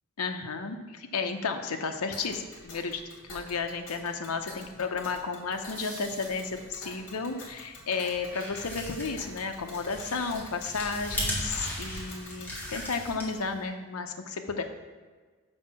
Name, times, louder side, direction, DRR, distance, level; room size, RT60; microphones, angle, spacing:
voice 1, 0.2-3.0 3.3-14.6, left 4 dB, 90° left, 6 dB, 0.7 m, -33 dB
Tick, 2.1-12.7, left 2 dB, 60° left, 2.0 m, -48 dB
sound 1, 5.5-7.1, right 1 dB, 20° right, 1.7 m, -47 dB
sound 2, 8.1-13.6, left 1 dB, 10° left, 1.6 m, -37 dB
6.5 x 5.3 x 5.9 m, 1.4 s
head